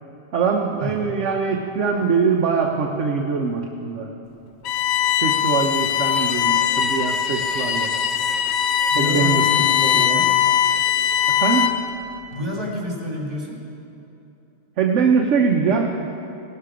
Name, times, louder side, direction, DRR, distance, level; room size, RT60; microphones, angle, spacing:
voice 1, 0.3-4.1 5.2-7.9 9.0-10.2 11.3-11.7 14.8-15.9, right 5 dB, 60° right, 1 dB, 1.2 m, -22 dB
Bowed string instrument, 4.6-11.9, left 9 dB, 80° left, 1.2 m, -20 dB
voice 2, 8.9-10.4 12.3-13.6, equal, 40° right, -2 dB, 3.0 m, -28 dB
17.5 x 12.5 x 5.0 m, 2.8 s
omnidirectional pair, 1.4 m